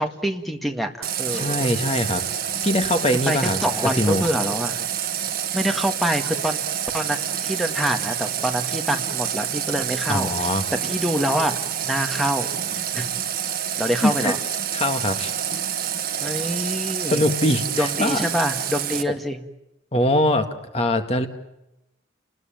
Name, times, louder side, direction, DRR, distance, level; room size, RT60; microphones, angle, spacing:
voice 1, 0.0-1.7 3.2-4.9 5.5-6.6 6.9-10.5 10.8-11.6 11.8-12.5 12.9-13.1 13.8-14.4 16.2-17.2 17.7-19.4, equal, ahead, 5 dB, 1.8 m, -26 dB
Water tap faucet, 1.0-19.0, right 9 dB, 50° right, 1.7 m, -28 dB
voice 2, 1.3-2.2 2.6-3.6 4.0-4.3 10.1-10.6 14.0-14.3 14.7-15.3 17.1-18.2 19.9-20.5 20.7-21.3, left 1 dB, 30° left, 7 dB, 1.9 m, -22 dB
29.0 x 20.5 x 9.1 m, 0.90 s
head